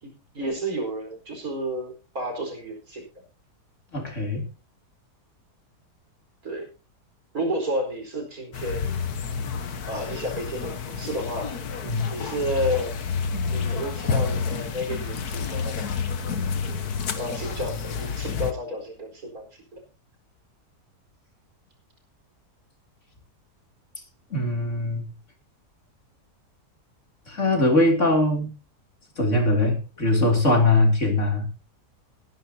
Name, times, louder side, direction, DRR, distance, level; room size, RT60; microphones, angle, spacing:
voice 1, 0.0-3.0 6.4-6.6 7.3-8.9 9.8-11.5 12.1-12.9 13.5-15.9 17.2-19.5, equal, 60° right, 3 dB, 4.9 m, -31 dB
voice 2, 3.9-4.4 11.8-12.1 24.3-25.0 27.3-28.5 29.2-31.4, left 2 dB, 45° left, 2 dB, 3.4 m, -21 dB
sound 1, 8.5-18.5, left 5 dB, 65° left, 1.7 m, -29 dB
20.5 x 11.0 x 2.8 m, 0.32 s
omnidirectional pair, 1.8 m